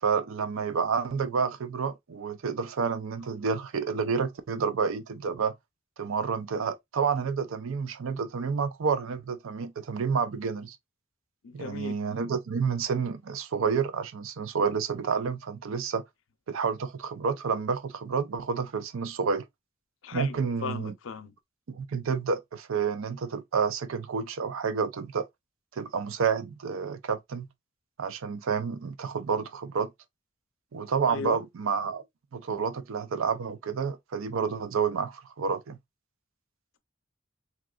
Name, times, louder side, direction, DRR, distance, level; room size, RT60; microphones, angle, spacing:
voice 1, 0.0-5.6 6.0-10.8 11.5-16.0 16.5-19.5 20.1-20.9 21.7-25.3 25.8-27.5 28.0-29.9 30.7-32.0 32.3-35.8, right 5 dB, 85° right, 0.5 m, -29 dB
voice 2, 11.4-12.0 20.0-21.3 31.1-31.4, left 5 dB, 75° left, 0.5 m, -37 dB
3.5 x 2.9 x 2.3 m
head